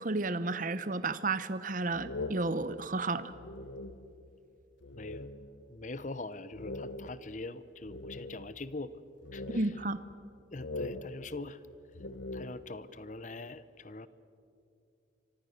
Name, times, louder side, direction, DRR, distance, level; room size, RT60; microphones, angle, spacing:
voice 1, 0.0-3.3 9.5-10.0, right 3 dB, 45° right, 14 dB, 0.9 m, -32 dB
sound 1, 1.9-4.4 4.8-5.7 6.0-6.1 6.5-8.7 9.2-10.3 10.6-12.9, left 2 dB, 70° left, 1.0 m, -43 dB
voice 2, 4.9-5.3 5.7-8.9 9.3-9.4 10.5-11.6 12.3-14.1, left 2 dB, 40° left, 15 dB, 0.8 m, -42 dB
28.5 x 25.0 x 6.6 m, 2.7 s
head